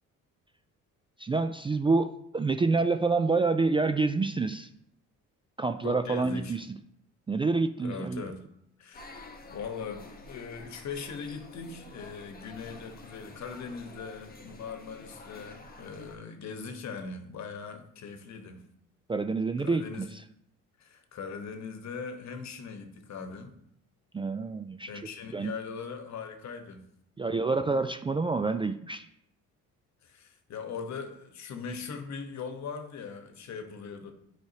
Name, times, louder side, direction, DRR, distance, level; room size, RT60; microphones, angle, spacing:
voice 1, 1.2-4.7 5.6-6.7 7.3-8.2 19.1-20.1 24.1-24.9 25.3-25.5 27.2-29.1, right 3 dB, 15° right, 0.3 m, -27 dB
voice 2, 5.8-6.6 7.8-8.5 8.8-18.7 19.6-20.1 20.8-23.6 24.9-26.9 30.0-34.1, left 5 dB, 60° left, 1.2 m, -40 dB
sound 1, 8.9-16.2, left 2 dB, 30° left, 1.1 m, -49 dB
9.4 x 4.9 x 2.8 m
supercardioid pair, 75°, 32 cm